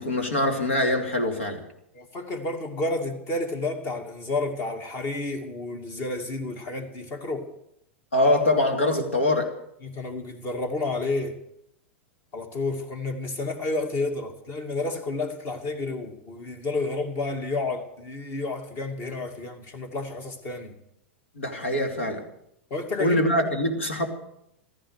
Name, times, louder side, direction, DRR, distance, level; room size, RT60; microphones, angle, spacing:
voice 1, 0.0-1.6 8.1-9.6 21.4-22.2 23.0-24.1, left 1 dB, 75° left, 2.7 m, -23 dB
voice 2, 1.9-7.5 9.8-11.4 12.3-20.7 22.7-23.2, left 2 dB, 40° left, 2.5 m, -30 dB
15.5 x 14.0 x 6.5 m
figure-of-eight pair, 95°, 7 cm